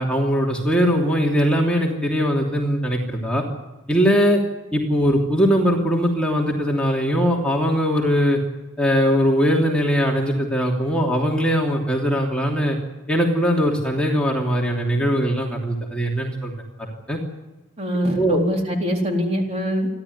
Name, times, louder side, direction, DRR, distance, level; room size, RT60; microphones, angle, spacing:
voice 1, 0.0-3.4 3.9-4.4 4.7-8.4 8.8-12.8 13.1-16.5 16.8-17.2 18.2-18.4, equal, 5° left, -2 dB, 3.0 m, -20 dB
voice 2, 17.8-19.9, equal, 35° right, 1 dB, 4.0 m, -23 dB
28.5 x 12.0 x 9.5 m, 1.1 s
head